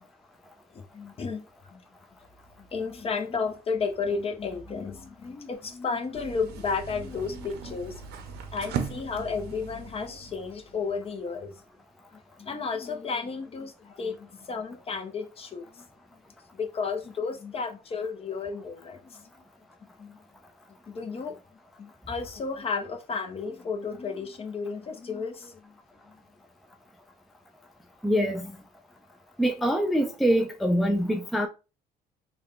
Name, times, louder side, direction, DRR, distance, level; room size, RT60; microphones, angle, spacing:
voice 1, 0.7-1.4 1.7-1.8 2.6-8.0 8.5-11.6 12.1-15.9 16.5-19.3 19.8-20.2 20.9-21.4 21.8-25.7 26.1-26.2, left 5 dB, 35° left, 0.8 m, -33 dB
sound 1, 6.1-11.2, right 6 dB, 75° right, 0.7 m, -38 dB
voice 2, 28.0-28.5 29.4-31.5, equal, ahead, 0.4 m, -24 dB
3.5 x 2.3 x 3.7 m
cardioid pair, 110°, 17 cm